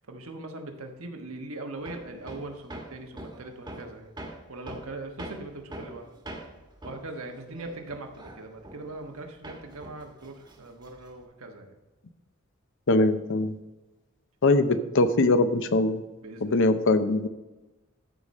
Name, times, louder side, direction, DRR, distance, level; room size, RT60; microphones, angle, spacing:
voice 1, 0.1-4.1 4.5-6.1 6.8-11.8 16.2-16.7, right 2 dB, 85° right, 4 dB, 1.3 m, -40 dB
Hammer, 1.8-9.2 9.4-11.2, right 1 dB, 20° right, 1.2 m, -43 dB
voice 2, 12.9-13.5 14.4-16.0 16.4-17.3, left 2 dB, 65° left, 10 dB, 0.7 m, -22 dB
13.5 x 5.0 x 4.1 m, 1.1 s
head